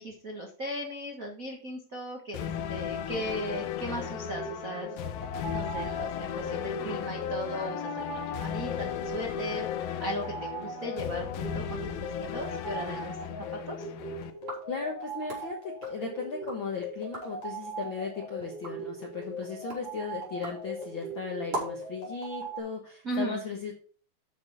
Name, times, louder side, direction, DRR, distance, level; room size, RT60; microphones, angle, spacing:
voice 1, 0.0-4.9 5.2-13.1 13.7-13.8 23.0-23.4, right 1 dB, 85° right, 1 dB, 0.7 m, -37 dB
sound 1, 2.3-14.3, left 10 dB, 85° left, 2.6 m, -35 dB
sound 2, 3.9-22.6, right 2 dB, 40° left, 4.0 m, -40 dB
sound 3, 14.3-16.7 17.0-17.5 17.9-21.9, right 2 dB, 35° right, 4.1 m, -43 dB
voice 2, 14.7-23.7, left 5 dB, 65° left, 1 dB, 1.2 m, -36 dB
8.7 x 6.2 x 5.3 m, 0.43 s
omnidirectional pair, 4.2 m